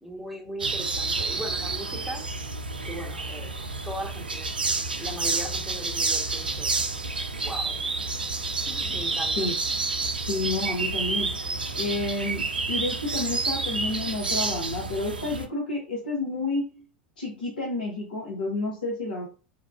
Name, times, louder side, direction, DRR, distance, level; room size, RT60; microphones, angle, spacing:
voice 1, 0.0-2.4 2.8-4.5 5.0-6.7 7.4-7.7 8.7-9.5, right 1 dB, 5° right, 0 dB, 1.1 m, -38 dB
sound 1, 0.6-15.5, right 3 dB, 85° right, 0.4 m, -29 dB
voice 2, 10.3-11.3 11.7-12.4 12.7-16.8 17.2-19.3, left 2 dB, 70° left, -3 dB, 0.9 m, -30 dB
3.6 x 2.3 x 2.4 m, 0.35 s
figure-of-eight pair, 85°, 5 cm